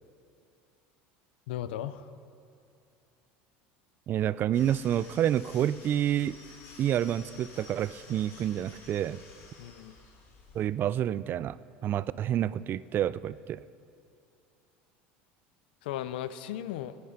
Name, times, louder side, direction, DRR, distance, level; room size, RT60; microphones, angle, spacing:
voice 1, 1.5-2.1 9.6-10.0 15.8-17.0, left 11 dB, 85° left, 13 dB, 0.6 m, -36 dB
voice 2, 4.1-6.4 6.8-9.2 10.5-11.6 11.8-13.6, right 11 dB, 40° right, 18 dB, 0.4 m, -28 dB
sound 1, 4.5-10.7, left 3 dB, 50° left, 2.9 m, -52 dB
18.0 x 9.6 x 5.1 m, 2.6 s
supercardioid pair, 105°, 5 cm